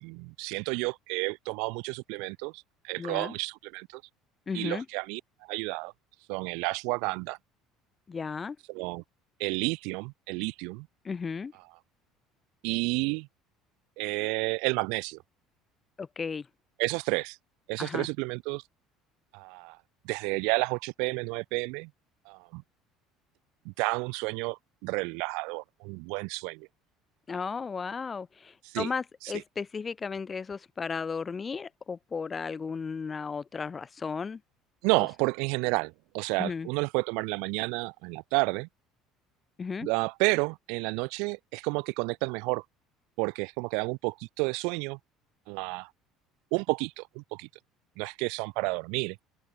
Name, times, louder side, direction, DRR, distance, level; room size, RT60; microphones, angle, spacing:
voice 1, 0.0-4.0 4.5-5.2 5.5-5.9 6.3-7.4 8.7-9.0 9.4-10.9 12.6-13.3 14.0-15.2 16.8-17.4 17.7-18.6 19.3-19.8 20.0-21.9 22.3-22.6 23.7-26.7 28.7-28.9 34.8-38.7 39.8-42.6 43.2-45.0 45.5-45.9 46.5-47.5 48.0-49.2, right 31 dB, 75° right, 2.1 m, -31 dB
voice 2, 3.0-3.3 4.5-4.9 8.1-8.6 11.0-11.5 16.0-16.5 17.8-18.1 27.3-34.4 36.4-36.7 39.6-39.9, left 5 dB, 15° left, 2.4 m, -34 dB
open air
cardioid pair, 175°, 0 cm